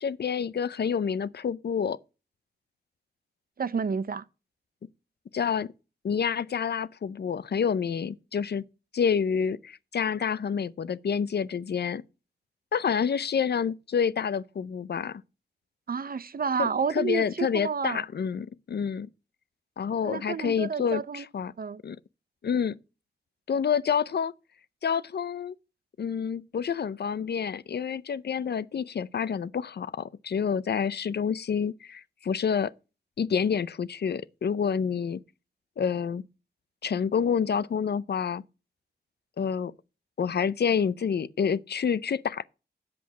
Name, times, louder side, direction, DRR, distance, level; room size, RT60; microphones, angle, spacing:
voice 1, 0.0-2.0 5.3-5.7 6.0-8.6 8.9-12.0 12.7-15.2 16.6-19.1 19.8-21.5 21.8-22.0 22.4-22.8 23.5-24.3 24.8-25.5 26.0-32.7 33.2-35.2 35.8-36.2 36.8-38.4 39.4-39.7 40.2-42.5, left 7 dB, 75° left, 0.6 m, -28 dB
voice 2, 3.6-4.2 15.9-18.0 20.0-21.3 21.6-21.8, right 6 dB, 60° right, 0.7 m, -30 dB
8.6 x 7.6 x 5.9 m
wide cardioid pair, 70°, 17 cm